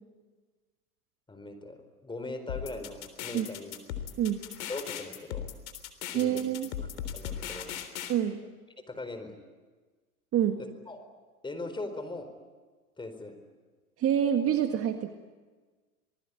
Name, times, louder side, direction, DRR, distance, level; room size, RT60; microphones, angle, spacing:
voice 1, 1.3-3.7 4.7-5.5 6.1-6.4 6.8-6.9 7.1-7.8 8.9-9.3 10.6-11.0 11.4-12.3 13.0-13.4, left 2 dB, 10° left, 8 dB, 4.4 m, -40 dB
sound 1, 2.5-8.1, left 10 dB, 65° left, 3.6 m, -38 dB
voice 2, 6.1-6.7 8.1-8.4 10.3-10.6 14.0-15.1, right 10 dB, 30° right, 6 dB, 1.8 m, -27 dB
27.0 x 20.0 x 9.8 m, 1.3 s
hypercardioid pair, 105°, 45 cm